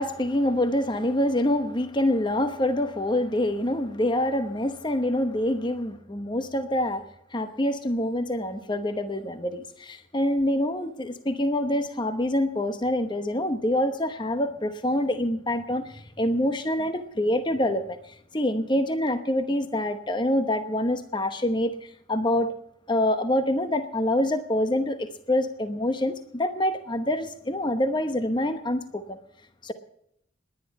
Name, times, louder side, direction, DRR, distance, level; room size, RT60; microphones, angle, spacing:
voice 1, 0.0-7.0 7.3-18.0 18.3-22.5 22.9-29.2 29.6-29.7, left 1 dB, 25° left, 9 dB, 0.9 m, -26 dB
19.5 x 10.5 x 5.3 m, 0.74 s
head